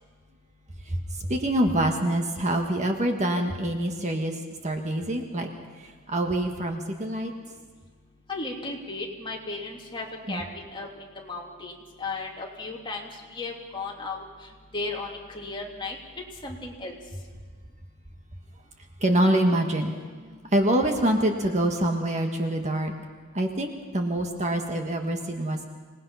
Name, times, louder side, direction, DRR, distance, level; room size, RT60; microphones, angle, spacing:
voice 1, 0.8-5.5 5.8-7.3 10.3-10.4 19.0-22.9 23.3-25.6, right 1 dB, 30° right, 3 dB, 1.6 m, -26 dB
voice 2, 8.3-11.7 12.0-14.2 14.7-16.0 16.4-17.0, left 3 dB, 20° left, -1 dB, 3.0 m, -35 dB
26.0 x 19.5 x 5.7 m, 1.5 s
head